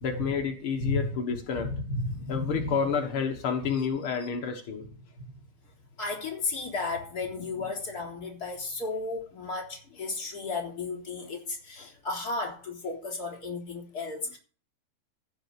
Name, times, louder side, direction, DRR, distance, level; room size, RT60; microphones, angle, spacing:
voice 1, 0.0-1.7 2.3-4.9 11.8-11.9, left 6 dB, 65° left, 1.3 m, -30 dB
voice 2, 1.5-2.8 6.0-14.4, left 3 dB, 25° left, 3.7 m, -34 dB
15.0 x 6.4 x 6.6 m
omnidirectional pair, 4.4 m